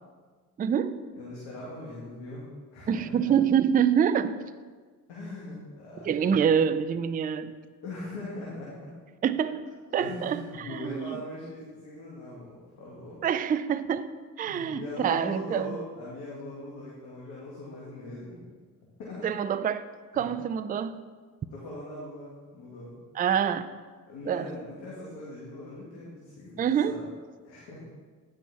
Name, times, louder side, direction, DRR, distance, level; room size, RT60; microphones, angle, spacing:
voice 1, 0.6-1.1 2.9-4.5 6.0-7.6 9.2-11.2 13.2-14.1 14.4-15.8 19.2-19.8 20.1-21.0 23.1-23.7 24.3-24.5 26.6-27.0, right 8 dB, 20° right, 0.4 m, -26 dB
voice 2, 1.2-3.3 5.1-6.4 7.8-8.7 10.0-13.2 14.4-18.4 19.0-19.4 20.1-20.3 21.5-23.0 24.1-27.0 27.4-27.9, left 1 dB, 65° left, 2.2 m, -40 dB
9.8 x 6.3 x 4.2 m
hypercardioid pair, 50°, 45 cm